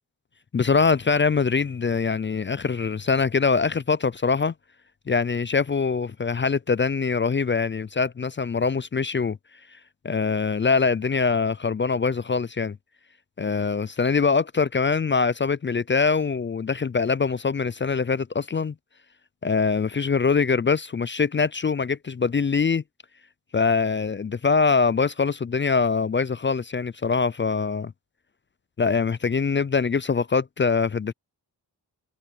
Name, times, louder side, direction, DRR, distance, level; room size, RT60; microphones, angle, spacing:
voice 1, 0.5-4.5 5.1-9.4 10.0-12.8 13.4-18.7 19.4-22.8 23.5-27.9 28.8-31.1, left 5 dB, 25° left, 0.4 m, -23 dB
cardioid pair, 45°, 45 cm